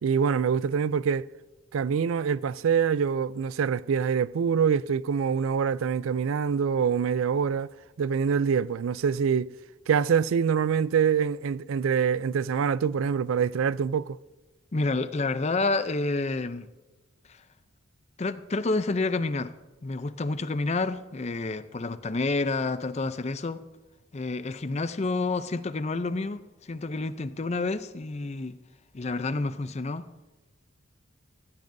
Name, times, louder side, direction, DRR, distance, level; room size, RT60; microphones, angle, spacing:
voice 1, 0.0-1.3 1.7-7.7 8.0-9.5 9.9-14.2, right 7 dB, 85° right, 0.4 m, -25 dB
voice 2, 14.7-16.7 17.3-17.4 18.2-19.5 19.8-23.6 24.1-28.6 28.9-30.0, left 3 dB, 35° left, 0.5 m, -29 dB
17.5 x 14.5 x 2.7 m
head